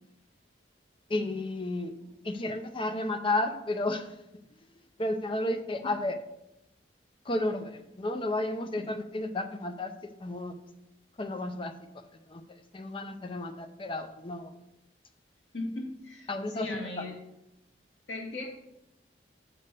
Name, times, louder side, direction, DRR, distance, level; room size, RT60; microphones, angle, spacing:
voice 1, 1.1-1.9 2.2-4.2 5.0-6.2 7.2-10.6 11.2-14.6 16.3-16.7 17.0-17.1, left 2 dB, 30° left, 7 dB, 0.6 m, -32 dB
voice 2, 15.5-17.2 18.1-18.4, left 2 dB, 80° left, -1 dB, 2.0 m, -37 dB
6.8 x 4.3 x 6.7 m, 0.89 s
head